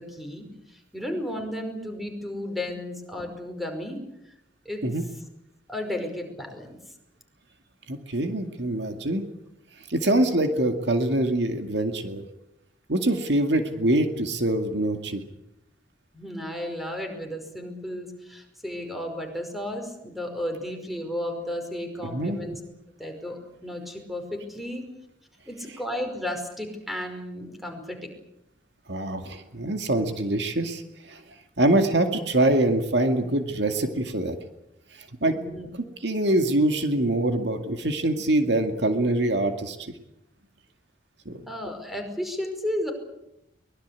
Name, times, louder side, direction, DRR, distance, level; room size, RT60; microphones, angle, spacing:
voice 1, 0.0-4.0 4.7-4.8 5.7-6.8 16.1-22.6 23.0-24.9 25.5-28.1 35.2-35.7 41.5-42.9, left 1 dB, ahead, 5 dB, 5.2 m, -33 dB
voice 2, 7.9-9.2 9.9-12.2 12.9-15.2 22.0-22.4 28.9-31.2 31.6-34.4 35.2-35.3 36.0-39.9 41.3-41.4, right 1 dB, 70° right, 6 dB, 2.3 m, -24 dB
23.5 x 21.5 x 8.4 m, 0.86 s
head